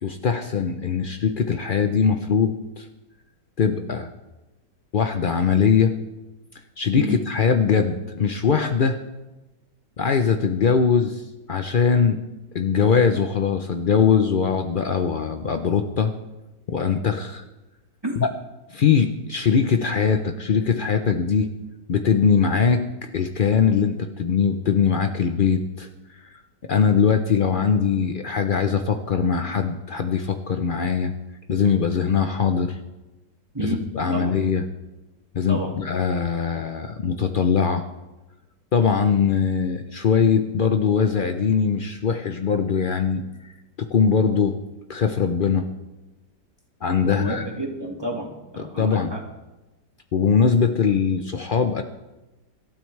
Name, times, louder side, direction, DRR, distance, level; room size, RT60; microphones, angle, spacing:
voice 1, 0.0-2.9 3.6-4.1 4.9-6.0 6.8-9.0 10.0-11.2 11.5-12.2 12.5-16.1 16.7-17.4 18.2-18.3 18.7-21.5 21.9-22.8 23.1-25.9 26.2-26.4 26.7-31.1 31.5-32.8 33.6-34.6 35.3-37.8 38.7-43.2 43.8-44.6 44.9-45.7 46.8-47.5 48.6-49.2 50.1-51.8, left 6 dB, 85° left, 6 dB, 0.4 m, -21 dB
voice 2, 47.0-49.2, right 1 dB, 15° right, 0 dB, 1.9 m, -30 dB
25.5 x 12.5 x 3.2 m, 1.1 s
omnidirectional pair, 1.8 m